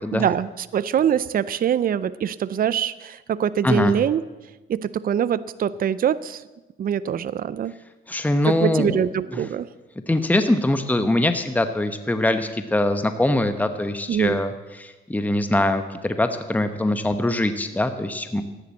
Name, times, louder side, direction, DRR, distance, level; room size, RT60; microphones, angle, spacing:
voice 1, 0.1-4.2 4.7-6.4 6.8-7.7 8.5-9.7 14.1-14.4, right 9 dB, 45° right, 16 dB, 0.6 m, -24 dB
voice 2, 3.6-4.0 8.1-9.0 9.3-9.4 10.1-14.5 14.8-18.4, left 1 dB, 10° left, 8 dB, 1.0 m, -22 dB
14.5 x 10.5 x 7.5 m, 1.1 s
cardioid pair, 90°, 20 cm